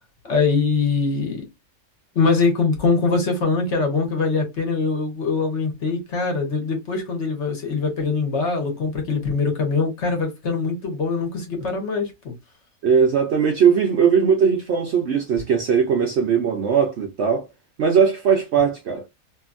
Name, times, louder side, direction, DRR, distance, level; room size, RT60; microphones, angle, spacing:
voice 1, 0.2-1.5 2.1-12.1, left 4 dB, 55° left, 1.2 m, -22 dB
voice 2, 12.8-17.5 17.8-19.0, right 6 dB, 65° right, 0.7 m, -19 dB
2.7 x 2.7 x 2.4 m
omnidirectional pair, 1.6 m